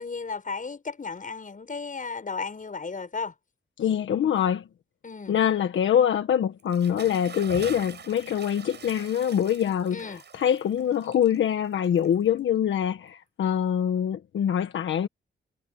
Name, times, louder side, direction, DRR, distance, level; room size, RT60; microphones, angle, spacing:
voice 1, 0.0-3.3 5.0-5.3 9.9-10.2, left 4 dB, 45° left, 7.3 m, -34 dB
voice 2, 3.8-4.6 5.3-15.1, left 9 dB, 85° left, 1.5 m, -24 dB
Bathtub (filling or washing) / Splash splatter, 6.6-12.5, right 6 dB, 65° right, 6.8 m, -44 dB
cardioid pair, 65°, 19 cm